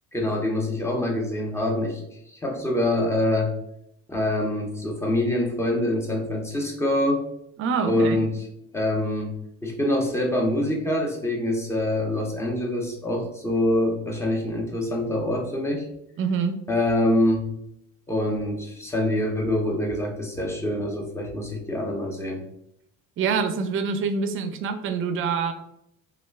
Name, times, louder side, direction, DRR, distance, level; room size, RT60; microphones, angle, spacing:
voice 1, 0.1-2.0 2.3-3.6 4.1-7.2 7.9-8.4 8.7-15.9 16.7-17.5 18.1-22.4, left 1 dB, 10° left, 0 dB, 0.6 m, -25 dB
voice 2, 7.6-8.3 16.2-16.6 23.2-25.5, right 5 dB, 45° right, 8 dB, 0.4 m, -25 dB
2.3 x 2.1 x 3.2 m, 0.78 s
cardioid pair, 110°, 30 cm